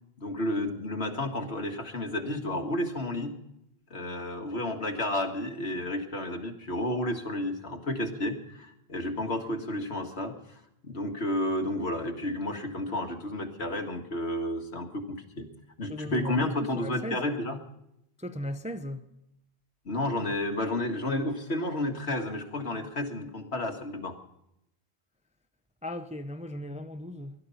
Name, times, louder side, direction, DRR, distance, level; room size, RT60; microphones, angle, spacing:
voice 1, 0.2-3.4 3.9-15.5 15.8-17.6 19.9-24.1, left 1 dB, 70° left, 2.1 m, -31 dB
voice 2, 15.9-17.3 18.2-19.1 25.8-27.3, left 1 dB, 5° right, 0.7 m, -37 dB
20.0 x 12.0 x 5.6 m
omnidirectional pair, 1.1 m